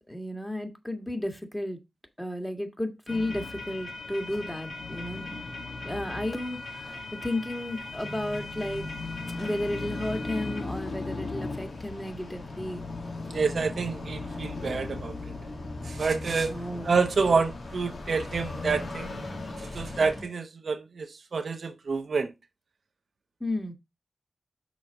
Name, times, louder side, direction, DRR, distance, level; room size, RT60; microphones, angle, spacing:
voice 1, 0.1-1.8 2.2-5.4 5.8-6.6 7.1-8.8 9.4-12.8 16.5-17.0 23.4-23.7, left 1 dB, 10° left, 1.7 m, -33 dB
sound 1, 3.1-20.2, left 3 dB, 70° left, 2.2 m, -37 dB
voice 2, 13.3-15.2 15.8-16.6 16.8-22.3, right 4 dB, 75° right, 0.9 m, -28 dB
6.2 x 4.1 x 5.1 m
cardioid pair, 65°, 0 cm